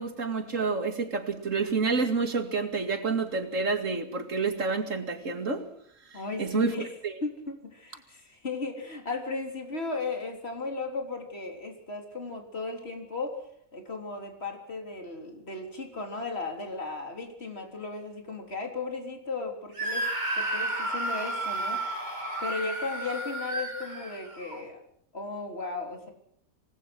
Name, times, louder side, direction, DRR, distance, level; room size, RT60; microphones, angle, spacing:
voice 1, 0.0-5.7 6.1-7.1, right 4 dB, 65° right, 2.6 m, -29 dB
voice 2, 6.1-6.9 7.2-13.4 13.7-20.1 20.4-22.1 22.4-24.8 25.1-26.1, left 3 dB, 45° left, 4.0 m, -36 dB
Screaming, 19.8-24.6, right 1 dB, 30° right, 3.3 m, -32 dB
27.0 x 19.5 x 6.1 m
omnidirectional pair, 1.4 m